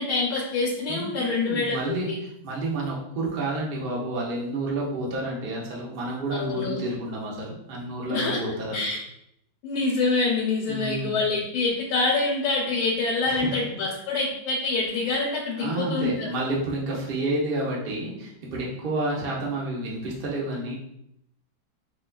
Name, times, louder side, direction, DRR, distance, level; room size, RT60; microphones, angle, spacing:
voice 1, 0.0-2.2 6.3-6.8 8.1-8.4 8.7-9.0 9.6-16.3, left 3 dB, 85° left, -2 dB, 1.5 m, -26 dB
voice 2, 0.9-2.1 2.4-8.9 10.7-11.2 13.3-13.6 15.6-20.7, right 2 dB, 85° right, -4 dB, 0.4 m, -30 dB
5.0 x 2.3 x 2.2 m, 0.78 s
omnidirectional pair, 2.2 m